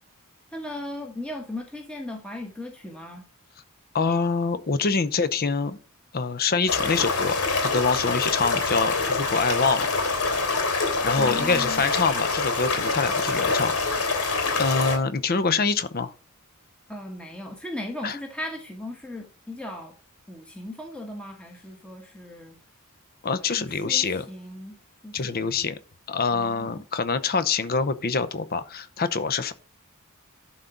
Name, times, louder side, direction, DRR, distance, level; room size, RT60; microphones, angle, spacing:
voice 1, 0.5-3.2 11.2-11.8 16.9-19.9 20.3-22.6 23.4-24.8 25.0-25.7 26.3-26.8, left 1 dB, 5° left, 1.1 m, -37 dB
voice 2, 3.9-5.8 6.1-9.9 11.0-14.1 14.6-16.1 18.0-18.2 23.2-24.3 25.1-25.8 26.1-29.5, left 4 dB, 45° left, 0.8 m, -25 dB
sound 1, 6.7-15.0, left 3 dB, 80° left, 3.1 m, -25 dB
11.5 x 3.9 x 5.8 m
head